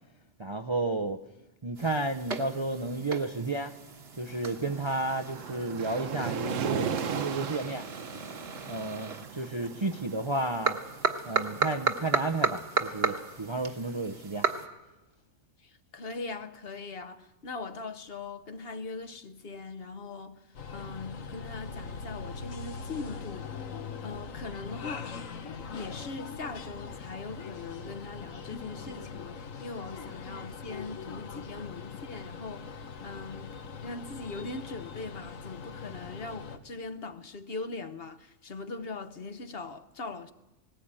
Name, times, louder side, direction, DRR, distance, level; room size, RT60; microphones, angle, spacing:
voice 1, 0.4-1.2 1.6-3.7 4.2-7.8 8.7-10.8 11.3-14.5, right 2 dB, 30° right, 0.5 m, -32 dB
sound 1, 1.8-14.7, right 4 dB, 50° right, 1.6 m, -35 dB
Waves surf, 4.3-11.4, right 6 dB, 75° right, 1.3 m, -37 dB
voice 2, 15.6-23.5 24.0-25.1 25.7-40.3, left 3 dB, 50° left, 1.1 m, -41 dB
sound 2, 20.5-36.6, left 5 dB, 80° left, 1.5 m, -41 dB
19.0 x 16.5 x 8.9 m
omnidirectional pair, 1.4 m